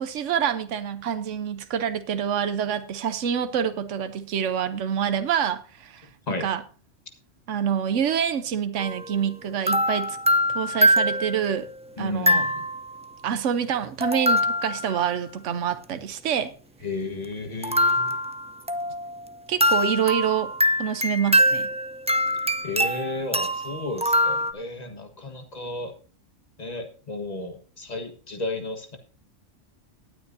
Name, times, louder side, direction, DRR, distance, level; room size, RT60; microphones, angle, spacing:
voice 1, 0.0-6.1 6.4-6.6 7.5-10.2 10.5-11.7 12.0-12.5 13.2-16.5 19.5-20.5 20.8-21.7, right 8 dB, 80° right, 1.2 m, -26 dB
sound 1, 8.8-9.0 9.7-11.6 12.3-12.9 14.0-15.0 17.6-19.2 19.6-24.5, equal, 10° right, 0.3 m, -23 dB
voice 2, 12.0-12.6 16.8-18.1 22.6-25.9 26.6-29.0, left 2 dB, 35° left, 1.6 m, -33 dB
18.5 x 9.3 x 2.7 m
omnidirectional pair, 1.2 m